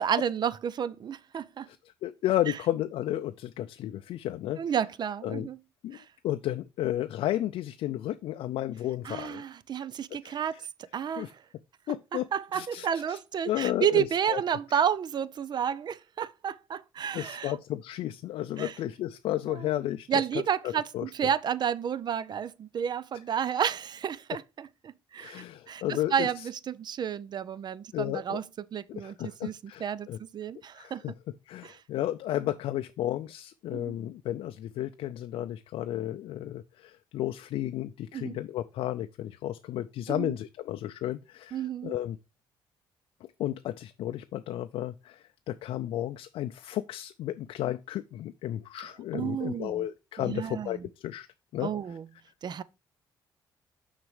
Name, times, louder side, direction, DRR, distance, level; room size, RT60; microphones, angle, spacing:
voice 1, 0.0-1.7 4.6-5.6 5.9-6.0 9.0-10.6 10.9-11.3 12.1-17.5 18.6-18.7 19.5-19.7 20.1-29.5 29.8-31.0 31.6-31.8 33.7-34.0 38.1-38.4 40.1-40.3 41.5-41.9 49.1-49.9 50.2-50.9 51.6-52.1 52.4-52.6, right 8 dB, 50° right, 0.5 m, -31 dB
voice 2, 2.0-4.6 5.2-5.5 5.8-6.0 6.2-9.4 10.2-10.6 11.2-11.3 11.9-12.2 12.5-13.2 13.5-14.4 14.7-14.8 17.1-20.2 20.6-21.3 25.2-26.5 27.9-28.4 29.0-30.2 30.7-31.1 31.5-42.2 43.4-51.3 51.5-51.7, left 13 dB, 75° left, 0.4 m, -33 dB
6.3 x 4.1 x 4.7 m
supercardioid pair, 70°, 9 cm